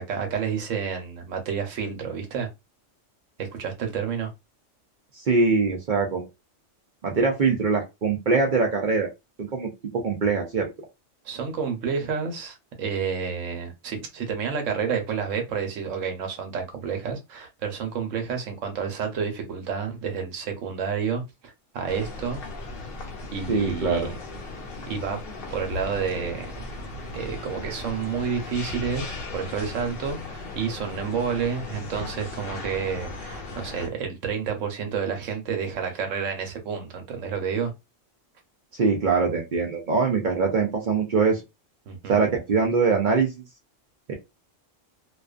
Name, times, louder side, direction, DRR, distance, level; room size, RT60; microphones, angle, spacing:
voice 1, 0.0-2.5 3.4-4.3 11.2-22.4 23.3-24.2 24.9-25.2 25.5-26.5 27.1-37.7 41.9-42.2, right 6 dB, 85° right, 1.1 m, -30 dB
voice 2, 5.1-6.3 7.0-9.1 9.4-10.7 23.5-24.1 38.7-41.4 42.1-43.4 44.1-44.2, right 4 dB, 55° right, 0.5 m, -23 dB
sound 1, 21.9-33.9, left 3 dB, 55° left, 0.8 m, -37 dB
2.4 x 2.3 x 2.3 m
omnidirectional pair, 1.3 m